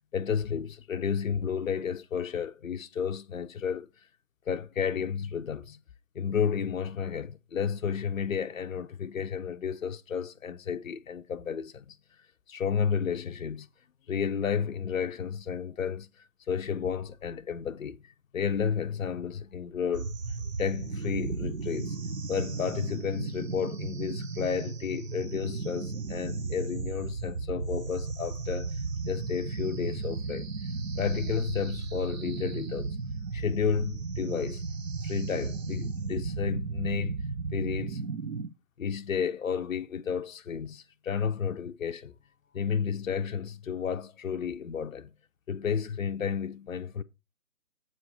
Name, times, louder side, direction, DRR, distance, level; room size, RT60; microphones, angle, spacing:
voice 1, 0.1-3.9 4.5-5.8 6.1-12.0 12.5-13.7 14.1-16.1 16.5-18.0 18.3-20.1 20.6-22.0 22.3-28.8 29.1-30.5 31.0-33.0 33.3-34.6 35.0-37.2 37.5-38.0 38.8-42.1 42.5-45.1 45.5-47.0, left 7 dB, 60° left, 0.7 m, -32 dB
sound 1, 19.9-38.5, right 4 dB, 60° right, 1.1 m, -35 dB
7.9 x 4.2 x 6.6 m
figure-of-eight pair, 145°, 45 cm